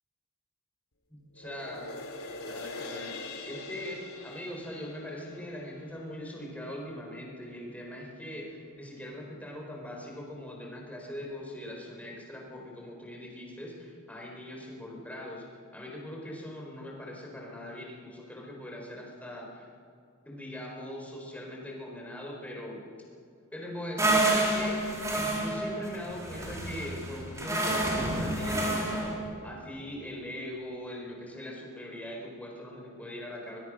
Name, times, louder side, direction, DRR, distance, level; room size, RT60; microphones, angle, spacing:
voice 1, 1.1-1.9 2.4-4.0 4.2-15.4 15.7-19.7 20.2-22.9 23.5-24.8 25.1-33.6, left 1 dB, 5° left, -1 dB, 4.6 m, -41 dB
sound 1, 1.3-7.9 8.4-8.5, left 2 dB, 85° left, 2.8 m, -44 dB
sound 2, 24.0-29.1, right 1 dB, 15° right, 3.7 m, -29 dB
22.0 x 21.5 x 6.4 m, 2.3 s
head